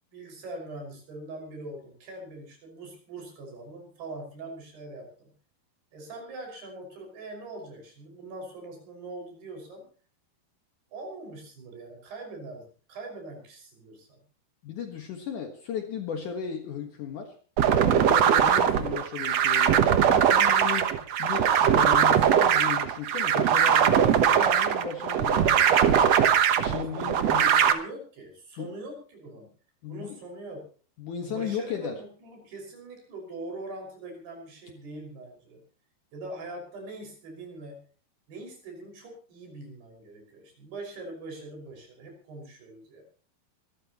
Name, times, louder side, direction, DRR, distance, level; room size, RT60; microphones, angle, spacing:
voice 1, 0.1-5.3 5.9-9.8 10.9-14.2 26.9-29.5 29.9-30.6 31.2-35.6 36.1-37.8 38.3-43.0, right 2 dB, 80° right, 2 dB, 7.7 m, -42 dB
voice 2, 14.6-17.3 17.9-20.9 21.2-25.9 26.6-27.6 28.6-28.7 29.8-30.2 31.0-32.0, left 7 dB, 60° left, 5 dB, 2.6 m, -35 dB
sound 1, 17.6-27.7, right 9 dB, 65° right, 1.7 m, -21 dB
25.5 x 13.5 x 3.0 m, 0.40 s
omnidirectional pair, 4.5 m